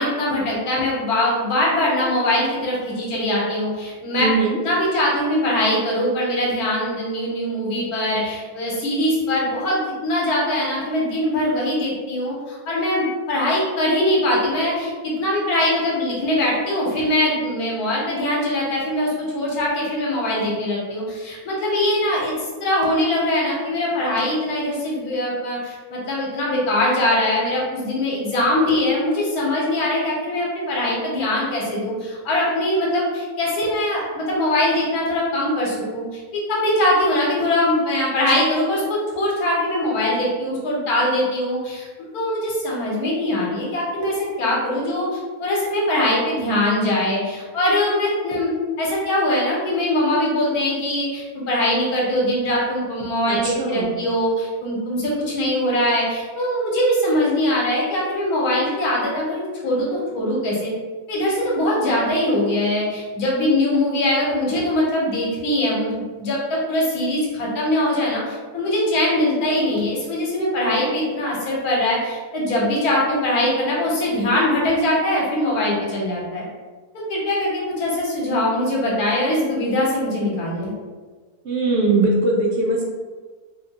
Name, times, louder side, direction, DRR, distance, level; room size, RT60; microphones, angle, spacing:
voice 1, 0.0-4.3 4.6-22.3 22.6-60.7 61.1-76.4 77.1-80.7, left 1 dB, 80° left, -4 dB, 1.3 m, -22 dB
voice 2, 4.2-4.6 53.3-54.0 81.4-82.8, right 2 dB, 65° right, -2 dB, 0.8 m, -20 dB
3.4 x 2.2 x 2.8 m, 1.4 s
omnidirectional pair, 1.6 m